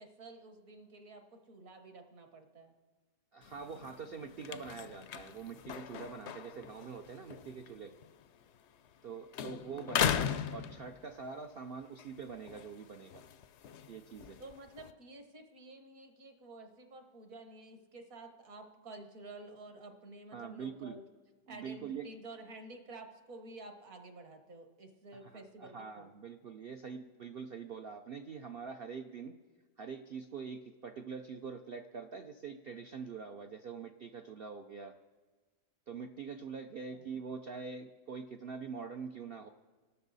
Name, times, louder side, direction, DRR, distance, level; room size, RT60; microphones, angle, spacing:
voice 1, 0.0-2.7 9.4-10.0 14.4-21.0 21.5-26.1 36.9-37.1, right 2 dB, 55° right, 6 dB, 1.6 m, -51 dB
voice 2, 3.3-7.9 9.0-13.2 13.9-14.4 20.3-21.0 21.5-22.1 25.2-29.3 29.8-34.9 35.9-39.5, right 5 dB, 75° right, 6 dB, 0.5 m, -44 dB
sound 1, 3.4-9.1 9.3-11.4 11.8-14.9, left 9 dB, 70° left, 0.6 m, -39 dB
27.0 x 12.5 x 4.1 m, 1.4 s
omnidirectional pair, 1.8 m